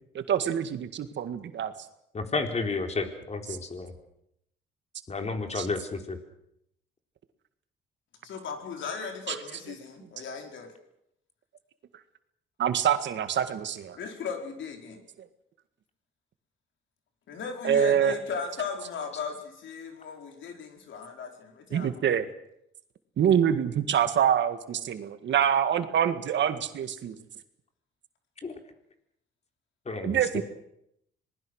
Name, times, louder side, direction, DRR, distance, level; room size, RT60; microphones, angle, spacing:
voice 1, 0.1-1.7 5.6-5.7 9.3-9.4 12.6-14.0 17.6-18.2 21.7-22.3 23.2-27.2 30.0-30.4, right 9 dB, 65° right, 10 dB, 1.9 m, -25 dB
voice 2, 2.1-3.9 5.1-6.2 28.4-28.5 29.9-30.4, left 3 dB, 35° left, 4 dB, 4.1 m, -31 dB
voice 3, 8.2-10.7 13.9-15.0 17.3-21.9, left 5 dB, 70° left, 3 dB, 4.7 m, -37 dB
26.5 x 20.0 x 6.5 m, 0.78 s
cardioid pair, 90°, 20 cm